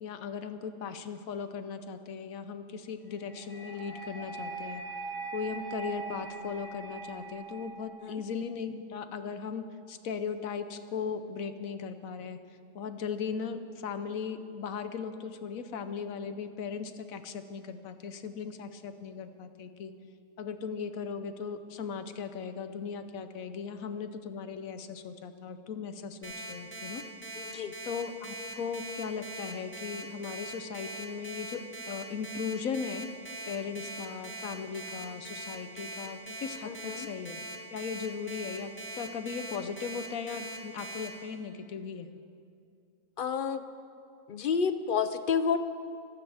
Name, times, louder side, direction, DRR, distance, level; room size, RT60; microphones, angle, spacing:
voice 1, 0.0-4.8 5.3-12.4 12.7-19.9 20.4-27.0 27.4-33.1 33.5-37.4 37.7-42.1, left 6 dB, 75° left, 10 dB, 1.2 m, -38 dB
sound 1, 3.2-8.2, right 3 dB, 40° right, 4.5 m, -41 dB
Alarm, 26.2-41.1, right 2 dB, 10° left, 1.8 m, -41 dB
voice 2, 27.4-27.7 36.6-37.1 43.2-43.6 44.3-45.6, left 6 dB, 55° left, 11 dB, 0.6 m, -30 dB
24.5 x 14.5 x 3.5 m, 2.4 s
omnidirectional pair, 1.5 m